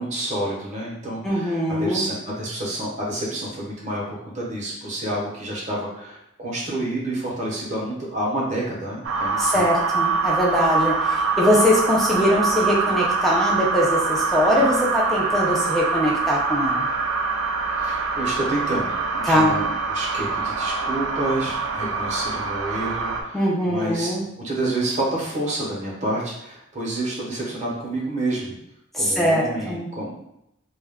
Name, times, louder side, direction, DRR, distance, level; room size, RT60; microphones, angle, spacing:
voice 1, 0.0-9.7 17.7-24.1 24.4-28.5 28.9-30.2, right 1 dB, 35° right, -5 dB, 0.8 m, -29 dB
voice 2, 1.2-2.1 9.4-16.9 19.2-19.5 23.3-24.3 28.9-29.9, equal, ahead, -5 dB, 0.5 m, -22 dB
sound 1, 9.0-23.2, right 4 dB, 80° right, 0.4 m, -24 dB
2.2 x 2.2 x 3.4 m, 0.81 s
head